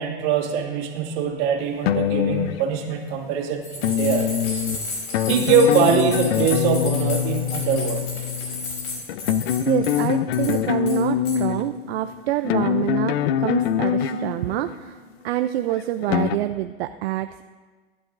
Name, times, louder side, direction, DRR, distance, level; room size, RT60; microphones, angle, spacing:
voice 1, 0.0-4.6 5.3-8.1, right 6 dB, 65° right, 0 dB, 2.3 m, -23 dB
sound 1, 1.8-3.2 3.8-15.0 15.7-16.4, left 9 dB, 80° left, 0.6 m, -24 dB
sound 2, 3.6-10.1 10.3-10.6 10.9-11.4, left 3 dB, 55° left, 4.1 m, -33 dB
voice 2, 9.7-15.0 15.2-17.4, right 13 dB, 85° right, 9 dB, 0.5 m, -26 dB
17.5 x 11.0 x 2.6 m, 1.4 s
supercardioid pair, 110°, 30 cm